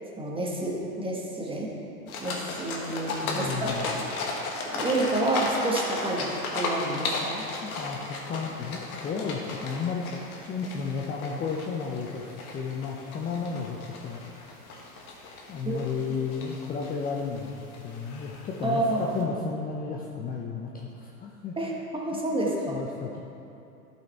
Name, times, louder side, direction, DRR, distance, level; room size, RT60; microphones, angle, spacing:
voice 1, 0.2-1.7 2.2-4.3 4.6-7.4 15.6-15.8 18.6-19.2 21.6-22.8, right 2 dB, 10° right, -2 dB, 1.5 m, -29 dB
sound 1, 2.1-19.2, left 3 dB, 70° left, 1.7 m, -35 dB
voice 2, 3.2-3.9 7.7-8.0 8.3-10.2 10.5-14.6 15.5-21.6 22.1-23.2, left 5 dB, 20° left, -1 dB, 0.6 m, -33 dB
12.0 x 5.7 x 4.2 m, 2.7 s
hypercardioid pair, 95°, 44 cm